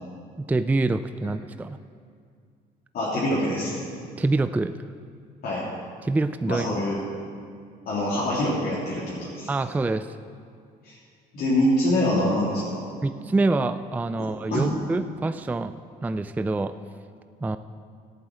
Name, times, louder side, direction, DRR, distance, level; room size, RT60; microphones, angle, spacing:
voice 1, 0.5-1.8 4.2-4.7 6.0-6.8 9.5-10.1 13.0-15.7 16.0-16.7 17.4-17.6, right 2 dB, 10° right, 11 dB, 0.3 m, -25 dB
voice 2, 2.9-3.8 5.4-5.7 6.5-7.0 7.9-9.5 10.8-11.0 11.3-12.8 14.2-14.6, left 1 dB, 65° left, -9 dB, 3.5 m, -25 dB
12.5 x 8.5 x 7.6 m, 2.2 s
cardioid pair, 110°, 17 cm